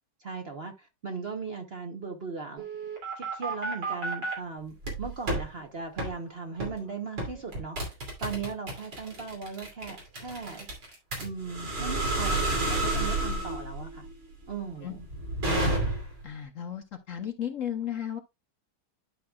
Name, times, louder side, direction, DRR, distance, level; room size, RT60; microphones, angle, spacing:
voice 1, 0.2-2.6 3.2-10.7 11.2-14.0 14.5-15.1, right 5 dB, 40° right, 1.0 m, -38 dB
sound 1, 2.6-4.3 4.8-5.5 6.0-6.1 6.6-6.8 7.2-16.2, right 2 dB, 80° right, 3.4 m, -30 dB
voice 2, 16.2-18.2, left 10 dB, 55° left, 1.1 m, -34 dB
11.5 x 5.5 x 2.3 m
omnidirectional pair, 1.9 m